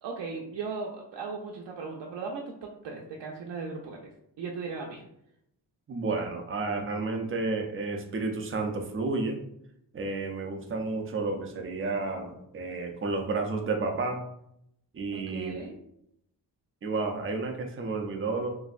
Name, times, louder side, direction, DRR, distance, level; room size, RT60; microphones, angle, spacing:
voice 1, 0.0-4.0 4.4-5.1 15.1-15.8, right 4 dB, 85° right, -1 dB, 0.5 m, -37 dB
voice 2, 5.9-9.4 9.9-14.2 14.9-15.5 16.8-18.5, right 3 dB, 35° right, 3 dB, 0.4 m, -31 dB
3.0 x 2.6 x 2.4 m, 0.76 s
wide cardioid pair, 175°, 41 cm